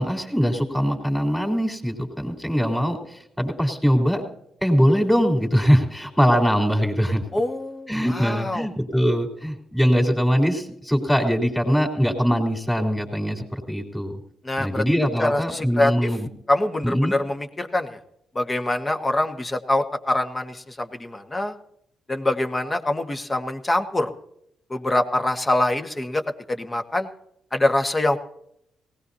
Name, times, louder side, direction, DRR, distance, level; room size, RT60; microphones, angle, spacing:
voice 1, 0.0-4.2 4.6-7.2 7.9-14.2 14.6-16.3 16.8-17.1, equal, 5° left, 3 dB, 3.6 m, -22 dB
voice 2, 7.3-8.7 14.4-14.8 15.2-16.1 16.5-18.0 18.3-21.5 22.1-24.1 24.7-26.2 26.5-27.1 27.5-28.2, left 1 dB, 30° left, 6 dB, 1.7 m, -24 dB
19.0 x 18.0 x 2.8 m, 0.75 s
hypercardioid pair, 50°, 0 cm